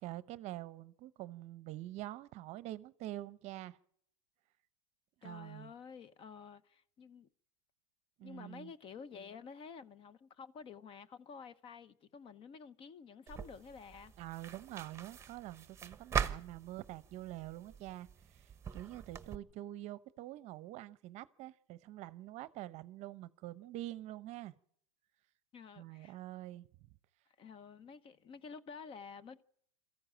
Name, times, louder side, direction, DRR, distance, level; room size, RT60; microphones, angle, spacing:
voice 1, 0.0-3.8 5.2-5.7 8.2-8.7 14.2-24.5 25.8-26.7, right 15 dB, 45° right, 0.8 m, -46 dB
voice 2, 5.2-7.3 8.2-14.1 25.5-26.2 27.4-29.4, left 6 dB, 35° left, 0.9 m, -51 dB
sound 1, 13.3-19.4, right 7 dB, 15° right, 1.1 m, -42 dB
22.0 x 14.5 x 8.9 m
supercardioid pair, 115°, 16 cm